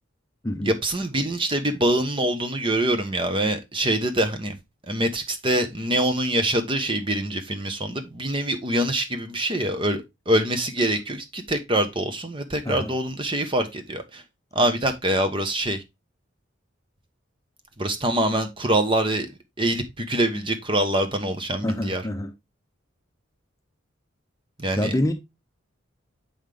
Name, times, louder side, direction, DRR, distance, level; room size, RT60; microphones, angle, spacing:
voice 1, 0.6-4.6 4.9-14.2 14.5-15.8 17.8-19.3 19.6-22.0 24.6-24.9, right 1 dB, 25° right, 1.1 m, -24 dB
voice 2, 21.6-22.3 24.8-25.1, left 1 dB, 15° left, 0.7 m, -26 dB
7.1 x 5.8 x 3.4 m
head